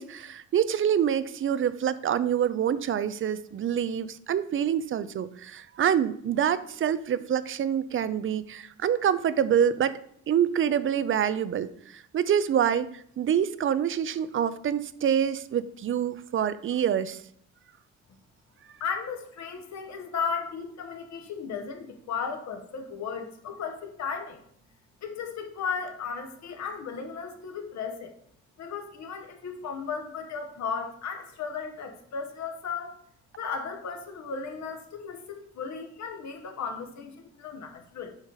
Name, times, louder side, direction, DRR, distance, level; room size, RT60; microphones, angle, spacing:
voice 1, 0.0-9.9 10.3-17.2, right 9 dB, 45° right, 15 dB, 0.5 m, -26 dB
voice 2, 18.8-24.4 25.0-28.1 28.6-33.0 33.4-38.1, left 6 dB, 65° left, 5 dB, 1.0 m, -35 dB
7.1 x 3.9 x 3.9 m, 0.66 s
cardioid pair, 90°, 30 cm